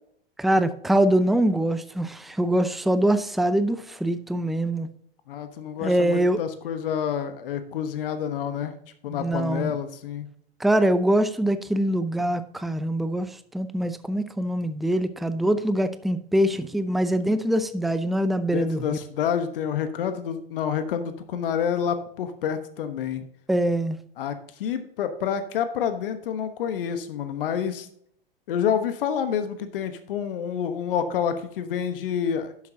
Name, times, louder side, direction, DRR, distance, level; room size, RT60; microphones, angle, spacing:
voice 1, 0.4-4.9 5.8-6.4 9.2-9.8 10.6-19.0 23.5-24.0, right 1 dB, ahead, 12 dB, 0.6 m, -23 dB
voice 2, 5.3-8.7 9.0-10.3 18.5-23.2 24.2-27.9 28.5-32.7, left 8 dB, 65° left, 9 dB, 1.2 m, -28 dB
11.5 x 8.4 x 2.8 m, 0.67 s
hypercardioid pair, 95°, 29 cm